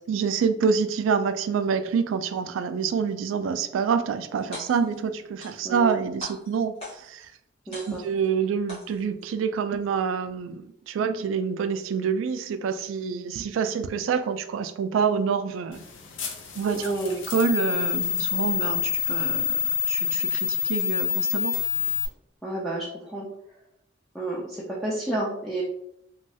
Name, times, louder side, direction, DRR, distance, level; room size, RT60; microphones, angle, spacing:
voice 1, 0.1-7.3 7.9-15.8 16.6-16.9 17.3-21.6, right 6 dB, 85° right, 11 dB, 0.3 m, -27 dB
sound 1, 4.4-5.0 5.4-5.9 6.2-7.2 7.7-8.3 8.7-9.3, left 1 dB, 35° left, 1.3 m, -41 dB
voice 2, 5.6-6.0 7.7-8.0 16.7-17.2 22.4-23.3 24.1-25.6, right 2 dB, ahead, -7 dB, 0.4 m, -30 dB
sound 2, 15.7-22.1, left 8 dB, 75° left, 0.5 m, -27 dB
3.0 x 2.3 x 2.7 m, 0.76 s
head